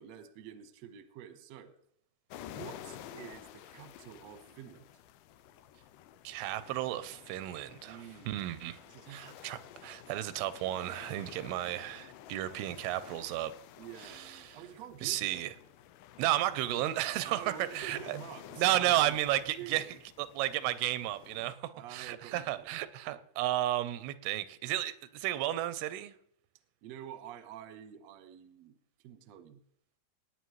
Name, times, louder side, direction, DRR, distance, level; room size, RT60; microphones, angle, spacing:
voice 1, 0.0-1.7 2.4-4.9 7.8-8.4 8.8-9.4 13.8-15.4 17.2-19.9 21.7-23.2 26.8-28.8 29.0-29.6, right 9 dB, 70° right, 1.7 m, -48 dB
sound 1, 2.3-21.5, left 11 dB, 90° left, 1.8 m, -52 dB
voice 2, 6.2-8.8 9.1-13.5 14.0-14.6 15.0-15.5 16.2-18.2 18.6-19.8 20.2-26.2, right 14 dB, 90° right, 2.7 m, -33 dB
18.5 x 9.4 x 3.1 m
omnidirectional pair, 4.4 m